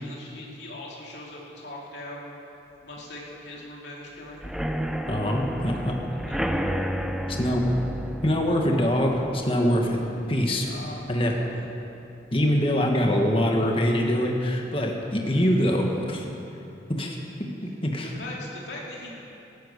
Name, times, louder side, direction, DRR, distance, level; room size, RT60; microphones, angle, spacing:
voice 1, 0.0-2.3 2.8-4.5 6.1-6.8 10.4-11.0 11.3-11.7 18.0-19.1, left 1 dB, 75° left, -3 dB, 2.7 m, -41 dB
sound 1, 4.4-12.0 12.4-12.8 13.0-13.1 13.5-13.6, equal, 5° right, 0.6 m, -32 dB
voice 2, 5.1-5.9 7.3-7.7 8.2-10.0 10.3-10.7 11.1-11.3 12.3-16.2 16.9-18.1, equal, 30° left, 1 dB, 1.6 m, -24 dB
14.0 x 12.0 x 8.3 m, 2.8 s
head